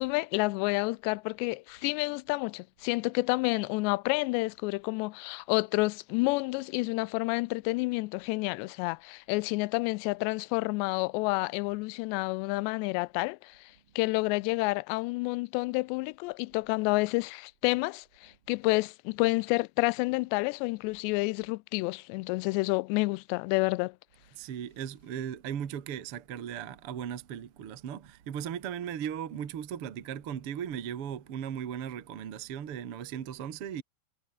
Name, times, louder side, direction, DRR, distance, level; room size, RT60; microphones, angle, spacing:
voice 1, 0.0-24.0, left 24 dB, 90° left, 2.7 m, -29 dB
voice 2, 24.3-33.8, right 9 dB, 50° right, 1.9 m, -37 dB
omnidirectional pair, 4.9 m